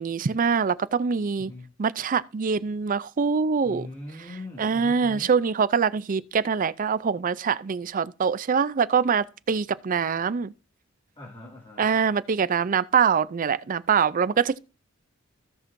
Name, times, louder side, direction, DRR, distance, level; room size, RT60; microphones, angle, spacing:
voice 1, 0.0-1.5 1.8-3.9 4.6-10.5 11.8-14.6, right 6 dB, 40° right, 0.4 m, -24 dB
voice 2, 1.4-1.7 3.6-5.3 11.2-11.9, left 1 dB, 20° left, 2.1 m, -41 dB
16.0 x 6.0 x 2.6 m
head